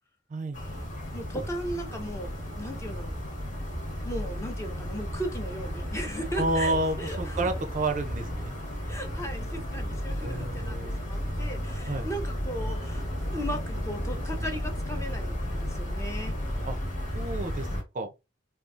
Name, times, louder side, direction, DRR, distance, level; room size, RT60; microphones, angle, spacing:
sound 1, 0.5-17.8, equal, 45° left, 1.2 m, -33 dB
voice 1, 1.1-3.2 4.0-7.5 8.9-13.0 13.3-16.3, equal, 15° left, 0.6 m, -37 dB
voice 2, 6.4-8.5 10.2-11.1 11.9-12.1 16.7-16.8 17.1-17.7 17.9-18.1, right 2 dB, 40° right, 0.4 m, -30 dB
3.8 x 2.3 x 2.4 m
head